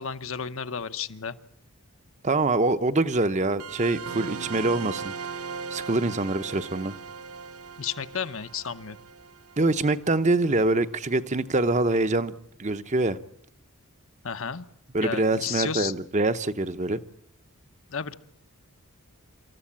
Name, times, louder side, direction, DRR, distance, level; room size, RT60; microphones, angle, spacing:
voice 1, 0.0-1.4 7.8-9.0 14.2-14.6 15.0-15.9 17.9-18.1, left 7 dB, 60° left, 1.0 m, -32 dB
voice 2, 2.2-5.1 5.7-6.9 9.6-13.2 14.9-17.0, right 2 dB, 30° right, 0.8 m, -25 dB
sound 1, 3.6-10.7, right 5 dB, 80° right, 0.8 m, -39 dB
27.0 x 14.0 x 8.7 m
head